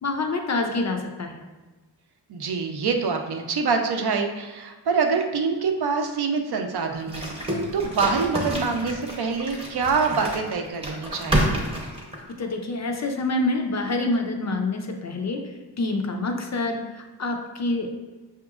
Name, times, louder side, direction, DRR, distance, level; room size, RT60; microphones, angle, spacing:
voice 1, 0.0-1.5 12.4-17.9, left 2 dB, 40° left, 3 dB, 0.4 m, -27 dB
voice 2, 2.3-11.6, right 5 dB, 65° right, 4 dB, 0.5 m, -25 dB
sound 1, 7.1-12.5, right 1 dB, 15° right, 0.7 m, -29 dB
6.0 x 2.9 x 2.4 m, 1.2 s
wide cardioid pair, 135°, 42 cm